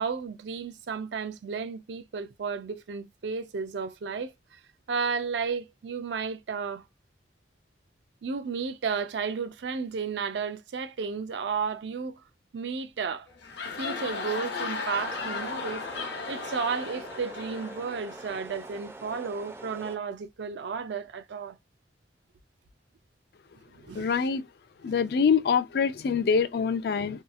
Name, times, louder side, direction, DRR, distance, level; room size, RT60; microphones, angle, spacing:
voice 1, 0.0-4.3 4.9-6.8 8.2-12.2 12.5-13.3 13.8-15.8 16.3-21.6 23.9-24.0, right 5 dB, 80° right, 0.4 m, -33 dB
sound 1, 13.3-18.8, left 4 dB, 75° left, 0.8 m, -36 dB
sound 2, 14.9-20.0, right 2 dB, 15° right, 0.4 m, -45 dB
voice 2, 23.9-24.4 24.8-27.2, left 6 dB, 60° left, 0.3 m, -25 dB
2.8 x 2.3 x 2.4 m
head